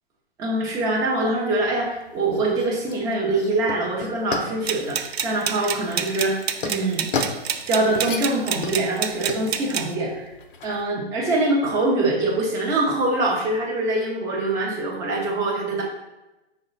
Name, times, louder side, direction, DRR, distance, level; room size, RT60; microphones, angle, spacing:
voice 1, 0.4-6.4 6.6-7.1 7.7-10.3 10.6-15.8, right 2 dB, 10° right, -2 dB, 0.4 m, -24 dB
sound 1, 1.6-10.9, left 5 dB, 55° left, 0.6 m, -34 dB
sound 2, 4.7-9.9, right 8 dB, 75° right, 0.5 m, -28 dB
5.4 x 2.2 x 3.7 m, 1.0 s
hypercardioid pair, 140°, 32 cm